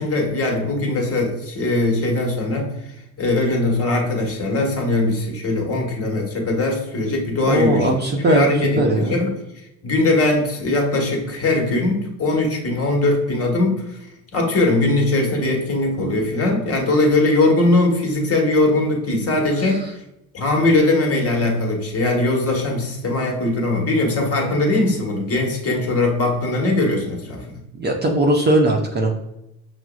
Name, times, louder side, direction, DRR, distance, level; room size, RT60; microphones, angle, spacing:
voice 1, 0.0-7.9 8.2-9.3 9.8-20.0 20.3-27.6, left 2 dB, 35° left, 0 dB, 1.3 m, -20 dB
voice 2, 7.5-8.5 8.8-9.2 19.6-19.7 27.8-29.1, right 1 dB, 25° right, 1 dB, 0.6 m, -18 dB
5.9 x 2.0 x 2.3 m, 0.87 s
hypercardioid pair, 65°, 43 cm